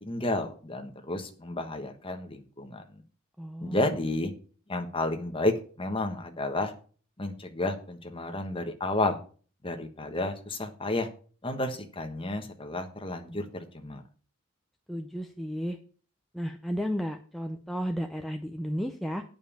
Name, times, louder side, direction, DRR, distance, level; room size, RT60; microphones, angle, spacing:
voice 1, 0.0-2.8 3.6-4.3 4.7-6.7 7.2-9.2 9.6-11.1 11.4-14.0, left 2 dB, 25° left, 5 dB, 1.2 m, -31 dB
voice 2, 3.4-4.0 14.9-15.8 16.3-19.2, equal, ahead, 4 dB, 0.5 m, -33 dB
9.3 x 5.3 x 7.3 m, 0.41 s
head